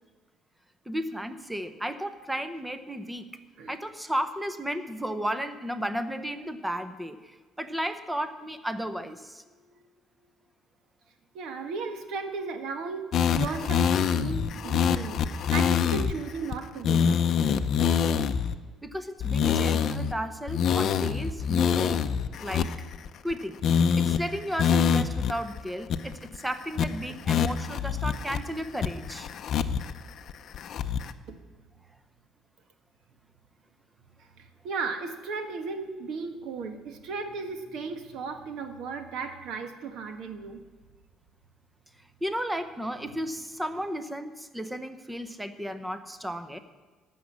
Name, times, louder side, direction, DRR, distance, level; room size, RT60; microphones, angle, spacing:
voice 1, 0.9-3.3 3.7-9.4 18.8-22.0 22.4-22.7 23.2-23.6 24.0-29.3 42.2-46.6, equal, 5° right, 10 dB, 0.7 m, -34 dB
voice 2, 9.5-9.8 11.3-13.1 13.3-17.2 31.3-31.4 34.2-40.6, right 4 dB, 65° right, 7 dB, 1.5 m, -36 dB
sound 1, 13.1-16.1 16.5-16.6 16.8-18.6 19.2-20.1 20.5-23.3 23.6-24.2 24.6-25.3 25.6-25.7 25.9-26.4 26.8-26.9 27.3-28.4 28.8-29.9 30.3-31.1, left 7 dB, 45° left, 0.6 m, -25 dB
14.5 x 6.3 x 9.6 m, 1.3 s
cardioid pair, 160°, 0 cm